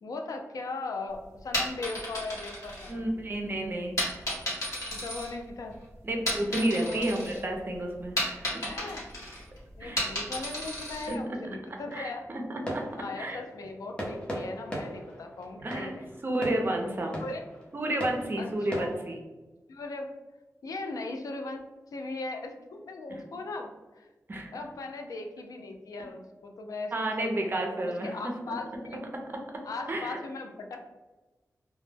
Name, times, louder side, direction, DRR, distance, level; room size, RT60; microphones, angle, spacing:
voice 1, 0.0-3.1 4.9-5.8 6.8-7.1 8.6-9.1 9.8-12.3 13.0-16.1 17.2-17.4 18.4-19.0 19.7-20.1 20.6-21.6 21.9-23.7 23.9-24.1 24.5-27.5 27.8-29.0 29.6-30.8, left 3 dB, 80° left, 4 dB, 0.3 m, -38 dB
sound 1, 1.4-3.3 4.0-5.8 6.1-7.4 7.7-11.2, left 1 dB, 60° left, 1.2 m, -33 dB
voice 2, 2.9-4.0 6.0-8.5 9.8-10.0 11.1-11.2 11.9-12.4 12.7-12.8 13.2-13.4 15.6-15.9 16.2-17.2 17.7-19.1 24.3-24.5 26.9-28.1 28.5-28.6 29.9-30.2, right 1 dB, 35° right, 1 dB, 0.4 m, -31 dB
sound 2, 9.1-19.0, equal, 20° left, 0.5 m, -41 dB
2.1 x 2.0 x 3.2 m, 1.2 s
wide cardioid pair, 125°, 6 cm